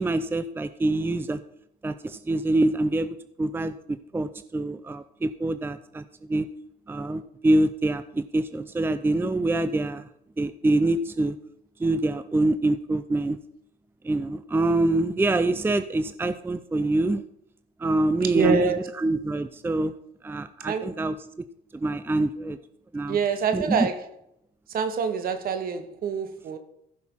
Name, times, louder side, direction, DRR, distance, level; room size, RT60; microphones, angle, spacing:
voice 1, 0.0-1.4 1.8-6.5 6.9-10.0 10.4-11.4 11.8-13.4 14.0-17.2 17.8-19.9 20.2-21.2 21.7-22.6 22.9-23.2 23.5-23.9, right 2 dB, 15° right, 0.6 m, -25 dB
voice 2, 18.2-18.9 20.7-20.9 23.1-24.0 24.7-26.6, right 6 dB, 60° right, 1.9 m, -26 dB
15.0 x 6.6 x 5.6 m
cardioid pair, 110°, 17 cm